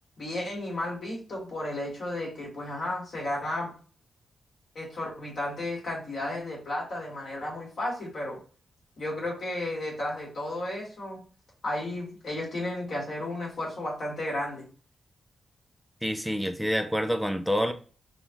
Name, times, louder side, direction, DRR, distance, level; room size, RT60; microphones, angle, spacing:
voice 1, 0.2-3.7 4.7-8.4 9.0-11.2 11.6-14.7, left 1 dB, 55° left, 1.7 m, -33 dB
voice 2, 16.0-17.7, equal, ahead, 0.3 m, -27 dB
3.6 x 2.3 x 2.9 m
wide cardioid pair, 140°, 0 cm